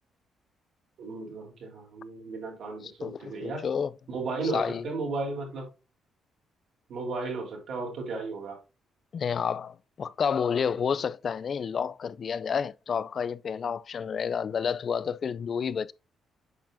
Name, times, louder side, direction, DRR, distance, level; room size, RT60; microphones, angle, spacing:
voice 1, 1.0-3.7 4.1-5.7 6.9-8.6, right 3 dB, 70° right, 3.6 m, -34 dB
voice 2, 2.8-3.9 4.5-4.8 9.1-15.9, left 6 dB, 50° left, 0.3 m, -30 dB
8.7 x 5.7 x 2.6 m
cardioid pair, 90°, 0 cm